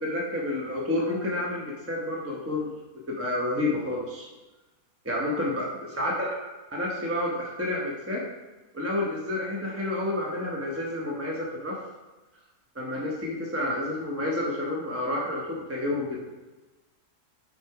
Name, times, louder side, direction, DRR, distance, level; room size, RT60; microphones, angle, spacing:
voice 1, 0.0-2.7 3.1-4.3 5.0-6.3 6.7-8.2 8.7-11.8 12.7-16.2, left 1 dB, 10° right, -3 dB, 0.9 m, -29 dB
6.0 x 4.6 x 4.8 m, 1.1 s
omnidirectional pair, 1.7 m